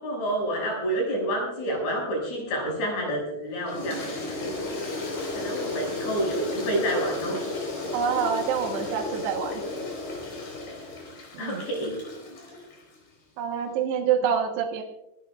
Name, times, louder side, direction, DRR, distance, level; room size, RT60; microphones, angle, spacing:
voice 1, 0.0-4.9 5.3-7.4 11.4-11.9, equal, 70° left, -1 dB, 8.3 m, -29 dB
Toilet flush, 3.7-13.0, left 2 dB, 55° left, 6.0 m, -34 dB
voice 2, 7.9-9.6 11.3-11.6 13.4-14.8, right 7 dB, 75° right, 1 dB, 3.3 m, -26 dB
25.5 x 14.0 x 2.4 m, 0.91 s
omnidirectional pair, 5.0 m